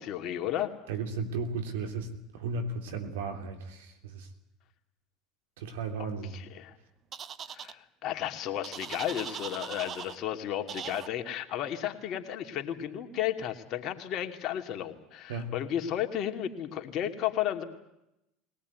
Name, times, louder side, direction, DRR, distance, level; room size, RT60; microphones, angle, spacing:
voice 1, 0.0-0.7 6.3-6.7 7.5-17.6, left 11 dB, 55° left, 5 dB, 2.7 m, -33 dB
voice 2, 0.9-4.3 5.6-6.4 15.3-15.5, right 4 dB, 80° right, 6 dB, 3.3 m, -35 dB
sound 1, 7.1-7.7 8.6-10.2 10.7-11.1, right 8 dB, 40° right, 1.1 m, -40 dB
21.5 x 18.5 x 9.5 m, 0.85 s
hypercardioid pair, 80°, 0 cm